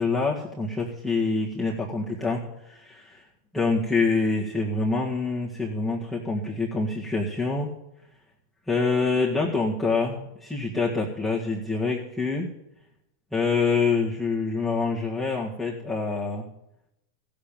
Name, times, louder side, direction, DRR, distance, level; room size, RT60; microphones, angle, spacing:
voice 1, 0.0-3.2 3.5-7.8 8.7-12.5 13.3-16.5, left 4 dB, ahead, -3 dB, 1.7 m, -26 dB
15.0 x 6.8 x 7.4 m, 0.85 s
hypercardioid pair, 100°, 0 cm